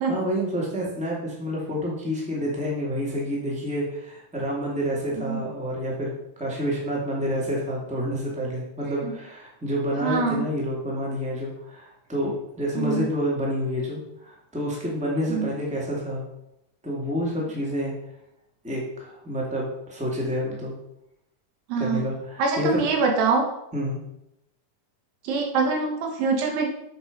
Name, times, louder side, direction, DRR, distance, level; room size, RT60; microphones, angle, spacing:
voice 1, 0.1-16.2 16.8-17.9 18.6-20.7 21.8-22.8 23.7-24.0, equal, ahead, -4 dB, 1.9 m, -28 dB
voice 2, 10.0-10.5 12.8-13.1 15.3-15.5 21.7-22.0 22.4-23.5 25.2-26.7, right 4 dB, 85° right, 1 dB, 3.2 m, -24 dB
8.5 x 6.1 x 5.4 m, 0.84 s
omnidirectional pair, 4.0 m